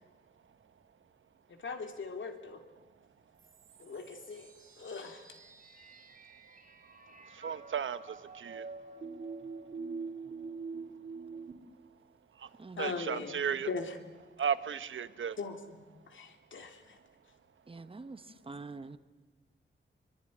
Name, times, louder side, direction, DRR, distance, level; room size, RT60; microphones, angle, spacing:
voice 1, 1.5-2.6 3.8-4.5 4.8-5.3 12.8-13.4 13.6-14.0 15.4-17.0 18.3-18.4, left 4 dB, 75° left, 6 dB, 2.9 m, -40 dB
sound 1, 3.4-11.5, right 4 dB, 45° right, 2.9 m, -45 dB
voice 2, 7.4-8.0 8.4-8.7 12.8-13.7 14.4-15.4, right 7 dB, 80° right, 14 dB, 1.0 m, -34 dB
voice 3, 17.7-18.2 18.5-19.0, right 3 dB, 30° right, 12 dB, 1.0 m, -45 dB
24.5 x 23.5 x 9.8 m, 1.2 s
wide cardioid pair, 165°, 20 cm